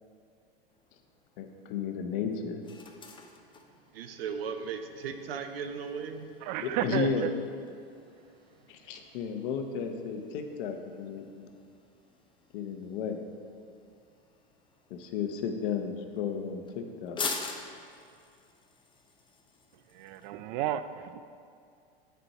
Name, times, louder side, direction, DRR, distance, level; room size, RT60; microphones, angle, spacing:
sound 1, 0.7-20.3, left 4 dB, 15° left, 0.7 m, -46 dB
voice 1, 1.4-2.7 6.6-7.3 8.7-11.5 12.5-13.2 14.9-17.2, left 6 dB, 60° left, 6 dB, 0.9 m, -33 dB
voice 2, 3.9-6.3 6.7-7.3, right 6 dB, 80° right, 7 dB, 0.7 m, -37 dB
voice 3, 6.4-7.3 19.9-21.2, right 11 dB, 50° right, 12 dB, 0.4 m, -32 dB
7.7 x 4.5 x 5.6 m, 2.4 s
hypercardioid pair, 105°, 29 cm